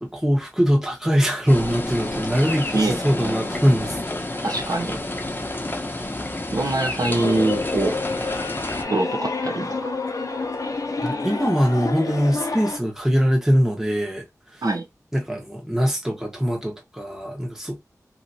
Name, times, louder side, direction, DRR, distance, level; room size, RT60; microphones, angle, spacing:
voice 1, 0.0-4.0 6.0-6.1 11.0-14.2 14.5-14.6 15.1-17.8, equal, 5° right, 1.2 m, -22 dB
sound 1, 1.5-8.8, left 1 dB, 30° left, 0.8 m, -29 dB
voice 2, 2.7-3.5 4.4-5.0 6.1-6.2 6.5-8.0 8.9-9.9 14.6-14.8, right 2 dB, 65° right, 1.0 m, -24 dB
sound 2, 7.1-12.8, left 3 dB, 60° left, 0.7 m, -28 dB
3.2 x 2.8 x 2.7 m
wide cardioid pair, 50°, 6 cm